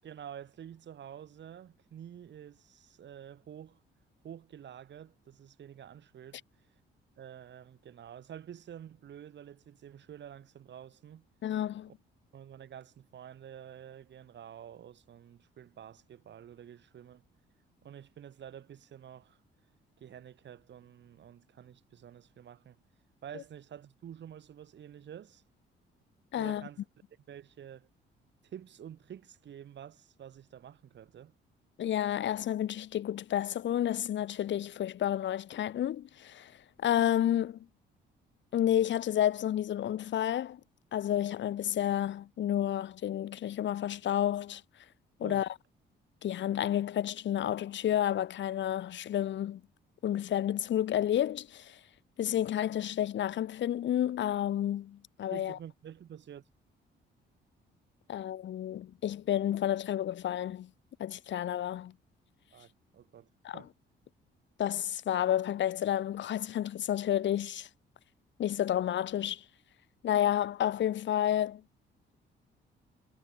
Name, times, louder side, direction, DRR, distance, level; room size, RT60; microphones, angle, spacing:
voice 1, 0.0-3.8 4.2-6.8 7.2-11.3 11.9-12.0 12.3-17.3 17.8-19.4 20.0-22.8 23.2-25.4 26.3-26.8 27.3-27.9 28.4-31.3 45.2-45.4 55.3-56.4 62.5-63.7, right 9 dB, 65° right, 7.9 m, -49 dB
voice 2, 11.4-11.9 26.3-26.7 31.8-36.5 36.8-37.7 38.5-40.6 40.9-44.6 45.2-45.5 46.2-49.6 50.0-51.8 52.2-55.6 58.1-60.7 61.0-61.9 63.4-63.6 64.6-67.7 68.4-69.4 70.0-71.6, left 11 dB, 65° left, 1.7 m, -30 dB
cardioid pair, 90°, 20 cm